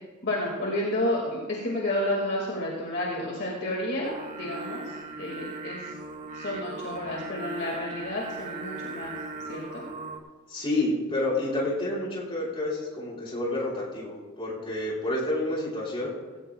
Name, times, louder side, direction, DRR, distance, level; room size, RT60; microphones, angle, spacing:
voice 1, 0.2-6.0 6.3-9.1 9.5-9.8, left 1 dB, 50° left, -2 dB, 2.1 m, -31 dB
Singing, 4.0-10.2, right 3 dB, 35° right, 1.2 m, -39 dB
voice 2, 10.5-16.1, left 1 dB, 25° left, -6 dB, 4.8 m, -29 dB
17.0 x 17.0 x 2.3 m, 1.3 s
head